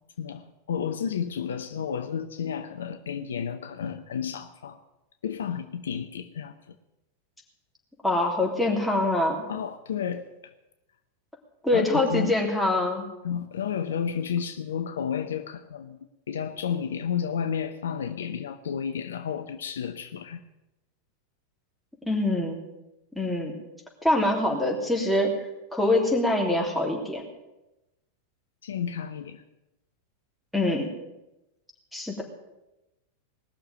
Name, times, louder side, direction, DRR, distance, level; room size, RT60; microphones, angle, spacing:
voice 1, 0.2-4.8 5.2-6.7 9.5-10.5 11.7-12.3 13.2-16.0 16.3-20.4 28.6-29.4, left 7 dB, 65° left, 10 dB, 0.7 m, -31 dB
voice 2, 8.0-9.4 11.6-13.1 22.0-22.6 23.1-23.5 24.0-25.3 25.7-27.2 30.5-30.9 31.9-32.2, left 1 dB, ahead, -2 dB, 3.2 m, -24 dB
19.5 x 6.8 x 9.1 m, 0.97 s
figure-of-eight pair, 90°, 0 cm